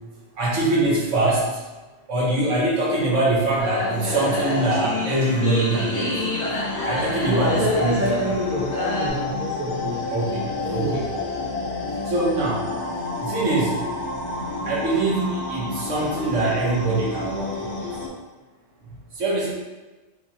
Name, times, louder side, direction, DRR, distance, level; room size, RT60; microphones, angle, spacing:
voice 1, 0.4-1.6 2.1-6.2 6.9-8.0 10.1-11.1 12.1-12.6 13.2-13.8 14.6-17.8 19.2-19.5, right 2 dB, 75° right, -5 dB, 1.3 m, -23 dB
sound 1, 3.6-9.1, left 2 dB, 30° left, 1.2 m, -28 dB
sound 2, 3.9-18.1, left 3 dB, 50° left, 0.9 m, -31 dB
voice 2, 7.3-10.0 10.6-11.0, equal, 15° right, -5 dB, 0.5 m, -26 dB
3.9 x 2.8 x 2.8 m, 1.2 s
omnidirectional pair, 1.3 m